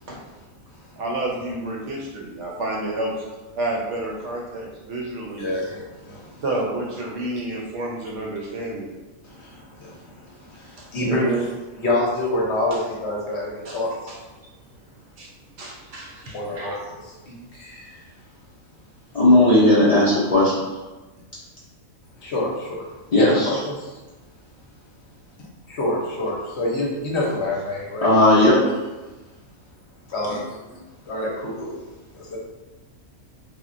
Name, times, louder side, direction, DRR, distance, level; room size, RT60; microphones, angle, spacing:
voice 1, 1.0-3.2 3.5-5.6 6.4-9.0 10.8-11.5 12.7-12.8 13.6-13.8 14.1-14.2 15.2-15.3 15.6-16.8, right 2 dB, 65° right, -1 dB, 0.8 m, -29 dB
voice 2, 5.3-6.4 9.2-11.5 11.8-13.9 16.3-18.0 22.2-22.8 23.1-24.0 25.7-28.1 30.1-30.6 31.1-31.7 32.1-32.4, left 1 dB, 60° left, -3 dB, 0.8 m, -27 dB
voice 3, 19.1-20.5 23.1-23.6 28.0-28.6, left 1 dB, 80° left, -9 dB, 0.3 m, -15 dB
3.5 x 2.1 x 2.5 m, 1.2 s
omnidirectional pair, 1.4 m